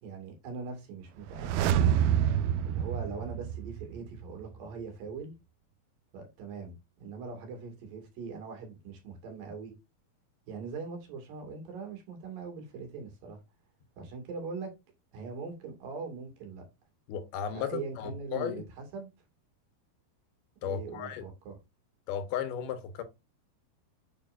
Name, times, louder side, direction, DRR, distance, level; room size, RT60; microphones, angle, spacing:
voice 1, 0.0-2.0 2.7-5.3 6.1-9.7 10.5-13.4 14.0-14.7 15.1-16.7 17.5-19.1 20.6-21.5, right 5 dB, 65° right, 3.8 m, -41 dB
sound 1, 1.2-4.1 4.4-4.5, right 10 dB, 85° right, 2.5 m, -27 dB
voice 2, 17.1-18.6 20.6-21.2 22.1-23.0, left 8 dB, 80° left, 3.1 m, -35 dB
8.5 x 6.8 x 2.5 m
omnidirectional pair, 4.4 m